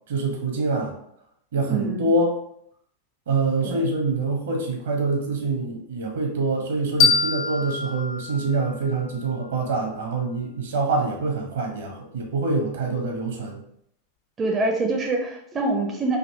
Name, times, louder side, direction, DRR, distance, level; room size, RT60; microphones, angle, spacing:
voice 1, 0.1-0.9 1.5-2.4 3.3-13.6, right 3 dB, 60° right, 1 dB, 1.0 m, -25 dB
voice 2, 1.7-2.1 3.6-3.8 14.4-16.2, right 2 dB, 20° right, 1 dB, 0.6 m, -25 dB
sound 1, 7.0-9.8, left 5 dB, 40° left, 0.5 m, -25 dB
5.1 x 2.7 x 2.7 m, 0.72 s
figure-of-eight pair, 90°, 0 cm